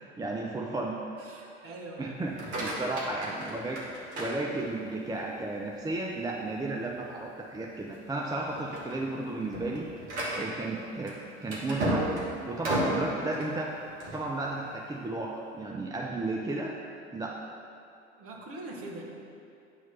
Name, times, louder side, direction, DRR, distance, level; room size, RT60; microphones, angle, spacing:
voice 1, 0.2-1.0 2.0-3.8 4.2-9.9 10.4-12.1 12.4-13.7 14.1-16.8 17.1-17.4, right 2 dB, 10° right, -1 dB, 0.5 m, -33 dB
voice 2, 1.2-2.1 18.1-19.0, right 2 dB, 40° right, -1 dB, 1.4 m, -42 dB
sound 1, 2.2-5.0 5.5-6.0 6.4-6.5 7.0-7.1 7.8-8.1 8.4-14.3, right 1 dB, 80° right, 1.5 m, -34 dB
8.9 x 3.1 x 5.5 m, 2.5 s
hypercardioid pair, 70°, 34 cm